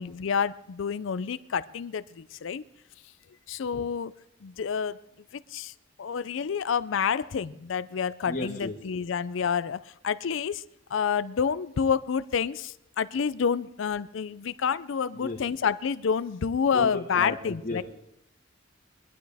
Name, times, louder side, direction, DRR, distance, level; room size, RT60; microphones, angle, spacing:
voice 1, 0.0-2.6 3.5-4.1 4.4-5.0 5.5-5.7 6.0-10.6 10.9-17.8, left 6 dB, 70° left, 16 dB, 0.4 m, -28 dB
voice 2, 8.3-8.7 15.2-15.4 16.7-17.8, left 2 dB, 40° left, -3 dB, 1.4 m, -33 dB
21.0 x 11.5 x 3.4 m, 0.77 s
head